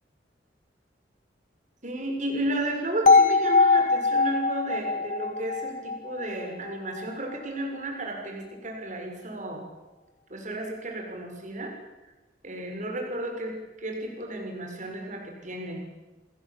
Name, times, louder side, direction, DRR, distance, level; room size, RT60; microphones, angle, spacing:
voice 1, 1.8-9.6 10.3-11.7 12.4-15.8, right 1 dB, 45° right, 2 dB, 6.8 m, -33 dB
sound 1, 3.1-7.0, left 4 dB, 45° left, 1.3 m, -22 dB
29.5 x 21.0 x 8.8 m, 1.1 s
head